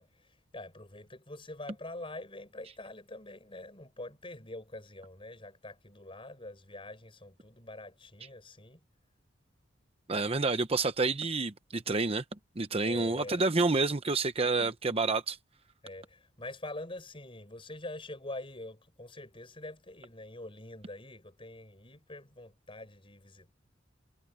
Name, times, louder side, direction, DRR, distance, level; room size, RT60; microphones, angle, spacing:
voice 1, 0.0-8.8 12.8-13.5 15.8-23.5, left 2 dB, 30° left, 7.0 m, -45 dB
voice 2, 10.1-12.2 12.6-15.4, right 3 dB, 30° right, 0.9 m, -28 dB
head